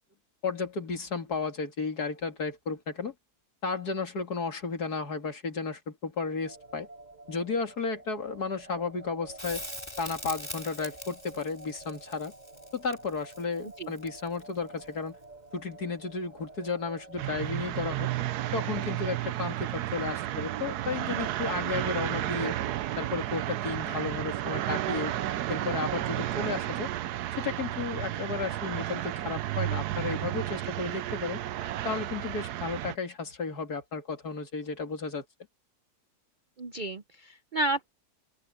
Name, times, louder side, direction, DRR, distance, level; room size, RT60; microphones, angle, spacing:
voice 1, 0.4-3.1 3.6-6.9 7.3-9.7 10.0-12.3 12.7-15.2 15.5-18.1 18.5-22.6 23.0-25.1 25.5-26.9 27.4-31.4 31.8-35.2, left 4 dB, 75° left, 3.0 m, -33 dB
sound 1, 6.4-17.6, right 3 dB, 25° right, 7.2 m, -50 dB
Crackle, 9.4-14.5 17.2-17.3, left 1 dB, 15° left, 3.1 m, -42 dB
sound 2, 17.2-33.0, right 13 dB, 85° right, 1.2 m, -32 dB
voice 2, 36.6-37.9, right 1 dB, 55° right, 0.5 m, -31 dB
open air
omnidirectional pair, 1.7 m